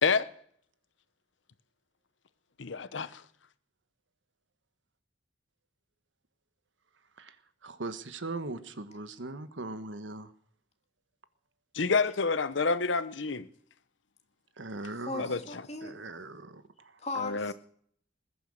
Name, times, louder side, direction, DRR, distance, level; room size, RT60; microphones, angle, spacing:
voice 1, 2.6-3.2 11.7-13.5 15.2-15.4 17.2-17.5, left 4 dB, 80° left, 0.9 m, -28 dB
voice 2, 7.6-10.3 14.6-15.3 15.8-17.0, right 2 dB, 85° right, 1.3 m, -40 dB
voice 3, 15.1-16.0 17.0-17.5, left 3 dB, 35° left, 2.2 m, -37 dB
20.5 x 10.0 x 6.5 m
head